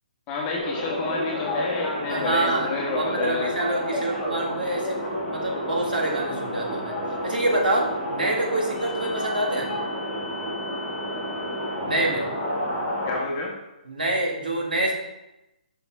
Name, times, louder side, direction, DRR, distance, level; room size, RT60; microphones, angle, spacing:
voice 1, 0.3-3.5 13.1-13.5, left 4 dB, 25° left, -2 dB, 1.3 m, -30 dB
sound 1, 0.6-13.2, equal, ahead, 1.6 m, -30 dB
voice 2, 2.1-2.7 3.0-5.0 5.3-6.9 7.2-9.7 11.8-12.3 13.9-14.9, right 1 dB, 85° right, 0 dB, 1.6 m, -26 dB
5.9 x 5.2 x 3.4 m, 0.93 s
hypercardioid pair, 150°, 5 cm